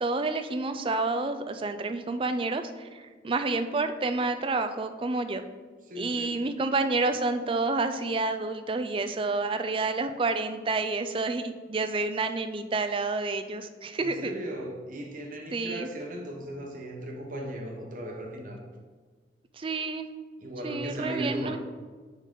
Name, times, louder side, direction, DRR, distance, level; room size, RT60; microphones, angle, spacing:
voice 1, 0.0-5.4 6.0-14.3 15.5-15.9 19.5-20.1 20.6-21.6, right 3 dB, 30° right, 9 dB, 0.4 m, -29 dB
voice 2, 5.9-6.4 14.0-18.6 20.4-21.6, right 1 dB, 45° right, 1 dB, 1.0 m, -37 dB
9.9 x 3.9 x 3.7 m, 1.5 s
head